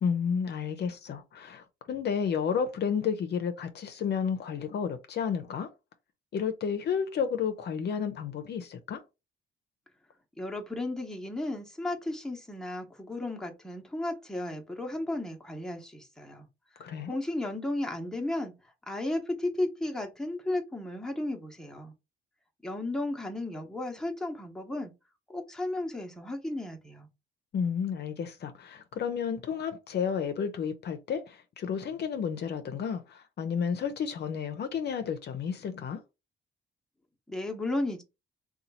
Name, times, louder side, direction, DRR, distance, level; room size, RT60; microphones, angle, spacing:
voice 1, 0.0-5.7 6.3-9.0 16.8-17.2 27.5-36.0, left 7 dB, 60° left, 0.6 m, -31 dB
voice 2, 10.4-16.5 17.1-18.5 18.9-21.9 22.6-24.9 25.3-27.1 37.3-38.0, left 1 dB, 5° left, 0.9 m, -34 dB
2.8 x 2.3 x 4.1 m
cardioid pair, 90°, 20 cm